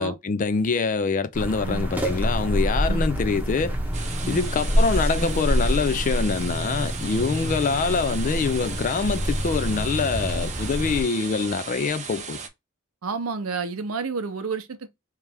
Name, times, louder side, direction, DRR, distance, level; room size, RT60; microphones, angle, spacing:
voice 1, 0.0-3.7 4.3-12.4, left 5 dB, 40° left, 0.4 m, -25 dB
sound 1, 1.3-11.0, equal, 10° right, 0.9 m, -26 dB
sound 2, 3.9-12.5, right 6 dB, 35° right, 0.6 m, -37 dB
voice 2, 13.0-14.9, right 4 dB, 75° right, 0.6 m, -30 dB
3.2 x 2.9 x 3.4 m
head